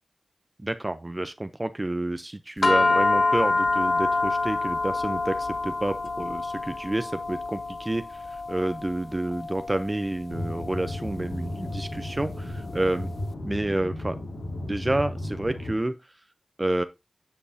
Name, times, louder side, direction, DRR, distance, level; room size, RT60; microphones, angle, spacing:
voice 1, 0.6-13.1 13.4-14.2 14.6-16.0 16.6-16.8, right 1 dB, 30° right, 0.7 m, -29 dB
sound 1, 2.6-13.1, left 3 dB, 60° left, 0.5 m, -27 dB
sound 2, 10.3-15.8, left 1 dB, 90° left, 2.1 m, -34 dB
10.0 x 5.2 x 2.8 m
cardioid pair, 45°, 0 cm